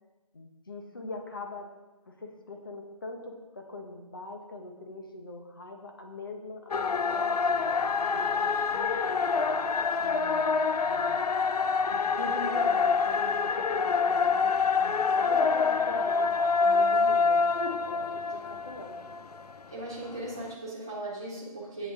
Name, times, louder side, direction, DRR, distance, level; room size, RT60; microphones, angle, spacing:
voice 1, 0.3-1.7 2.1-8.9 10.0-11.2 11.9-16.3 16.6-17.4 17.9-19.0, left 2 dB, 35° left, 3 dB, 1.0 m, -42 dB
sound 1, 6.7-19.5, left 5 dB, 90° left, 0.5 m, -26 dB
voice 2, 19.7-21.9, right 2 dB, 5° right, -9 dB, 0.6 m, -38 dB
8.2 x 6.8 x 3.7 m, 1.1 s
figure-of-eight pair, 175°, 19 cm